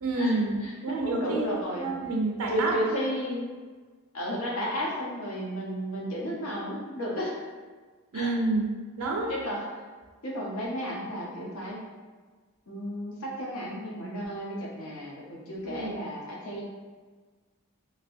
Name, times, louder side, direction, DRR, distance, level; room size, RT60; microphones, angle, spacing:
voice 1, 0.0-2.7 8.1-9.4 15.6-16.0, right 2 dB, 75° right, 0 dB, 0.6 m, -29 dB
voice 2, 0.6-1.9 2.5-3.5 4.1-7.4 8.1-8.3 9.3-9.7 10.2-11.8 12.7-16.6, equal, 70° left, -3 dB, 0.8 m, -33 dB
3.2 x 3.0 x 2.6 m, 1.4 s
head